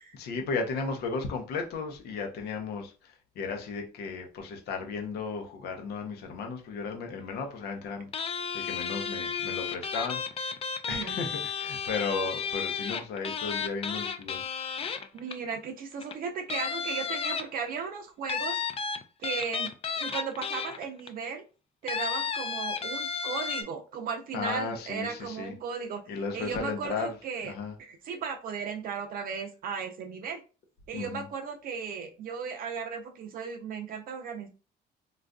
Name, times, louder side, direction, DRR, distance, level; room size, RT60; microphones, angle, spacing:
voice 1, 0.2-10.5 10.9-14.4 24.3-25.5 26.1-27.1 27.4-27.7 30.9-31.2, left 4 dB, 70° left, 0.7 m, -35 dB
sound 1, 8.1-15.5 16.0-16.1 16.5-17.8 18.3-21.1 21.9-23.6, left 6 dB, 35° left, 0.4 m, -33 dB
voice 2, 10.9-11.2 15.1-18.6 19.2-21.4 21.8-26.0 26.3-27.5 27.8-30.4 30.9-34.5, right 6 dB, 60° right, 0.5 m, -36 dB
3.8 x 2.4 x 2.2 m
cardioid pair, 110°, 17 cm